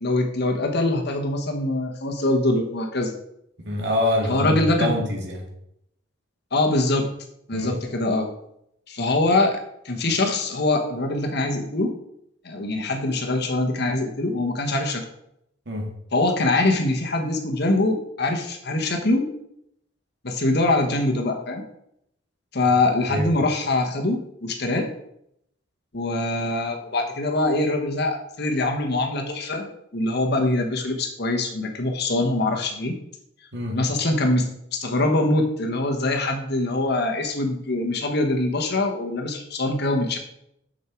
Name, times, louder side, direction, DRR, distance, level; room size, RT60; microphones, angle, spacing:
voice 1, 0.0-3.1 4.3-4.9 6.5-7.1 7.5-8.3 8.9-11.9 12.4-15.0 16.1-19.3 20.2-21.6 22.5-24.9 25.9-29.7 29.9-33.0 33.7-40.2, left 2 dB, 55° left, 3 dB, 1.3 m, -23 dB
voice 2, 3.6-5.4 7.5-7.8 15.7-15.9 23.1-23.3 33.5-33.8, left 1 dB, 65° right, 0 dB, 2.0 m, -25 dB
6.9 x 6.5 x 4.5 m, 0.76 s
head